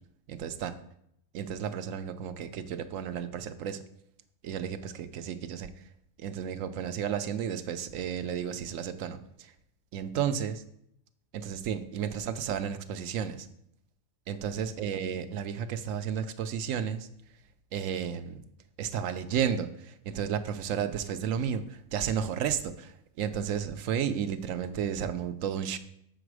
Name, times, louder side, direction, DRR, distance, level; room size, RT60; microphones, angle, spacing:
voice 1, 0.3-0.7 1.3-3.8 4.4-5.7 6.2-9.2 9.9-10.6 11.3-13.5 14.3-17.1 17.7-18.4 18.8-21.6 21.9-25.8, right 8 dB, 85° right, 10 dB, 1.0 m, -32 dB
7.1 x 5.0 x 4.7 m, 0.73 s
omnidirectional pair, 1.3 m